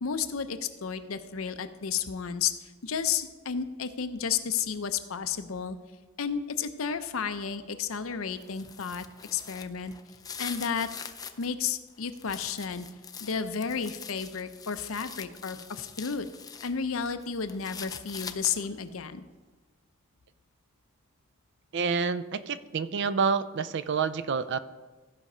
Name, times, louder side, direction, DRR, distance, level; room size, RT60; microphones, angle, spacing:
voice 1, 0.0-5.8 6.2-9.0 9.3-9.9 10.4-10.9 11.4-12.9 13.2-16.3 16.6-19.2, left 6 dB, 75° left, 10 dB, 0.6 m, -32 dB
sound 1, 8.3-11.5 11.9-16.7 17.1-18.8, left 6 dB, 20° left, 0.4 m, -43 dB
voice 2, 21.7-24.6, right 5 dB, 55° right, 14 dB, 0.4 m, -28 dB
14.5 x 5.0 x 5.5 m, 1.3 s
head